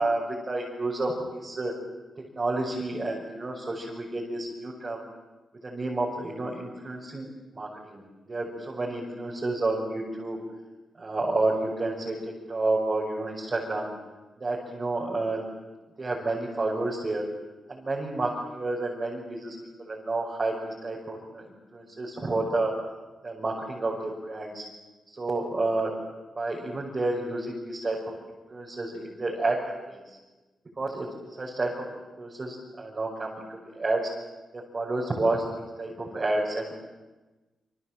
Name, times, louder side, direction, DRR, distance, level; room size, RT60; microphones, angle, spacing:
voice 1, 0.0-1.7 2.4-5.0 5.6-7.3 7.5-8.0 8.3-10.4 11.0-13.9 14.4-15.4 16.0-17.3 17.7-22.7 23.2-24.7 25.2-25.9 26.4-28.0 28.2-29.6 29.9-30.2 30.8-31.1 31.4-31.7 32.2-34.1 34.5-36.7, right 2 dB, 30° right, -3 dB, 5.9 m, -30 dB
28.0 x 26.0 x 7.7 m, 1.2 s
wide cardioid pair, 135°, 0 cm